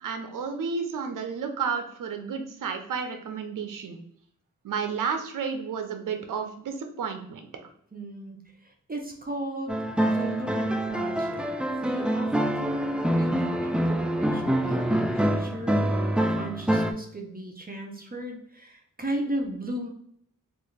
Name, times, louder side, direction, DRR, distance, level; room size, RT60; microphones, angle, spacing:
voice 1, 0.0-4.0 4.6-7.4, right 6 dB, 70° right, 6 dB, 0.6 m, -31 dB
voice 2, 7.9-8.4 8.6-9.8 10.0-11.5 11.8-12.3 12.6-19.9, right 1 dB, 25° right, 2 dB, 0.7 m, -35 dB
sound 1, 9.7-16.9, right 1 dB, 5° right, 0.3 m, -26 dB
3.3 x 2.5 x 3.1 m, 0.70 s
cardioid pair, 55°, 33 cm